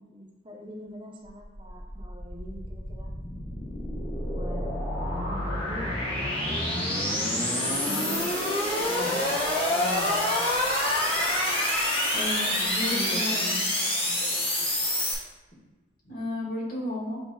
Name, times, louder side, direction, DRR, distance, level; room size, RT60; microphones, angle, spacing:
voice 1, 0.0-3.1 4.3-8.3 8.8-9.4 9.6-10.9 12.5-13.7 14.0-14.7, left 1 dB, 30° right, -1 dB, 0.6 m, -41 dB
sound 1, 1.4-15.1, left 1 dB, 30° left, 1.0 m, -27 dB
voice 2, 12.1-13.5 16.0-17.2, left 1 dB, 50° left, -6 dB, 1.5 m, -33 dB
8.2 x 2.8 x 2.3 m, 1.2 s
head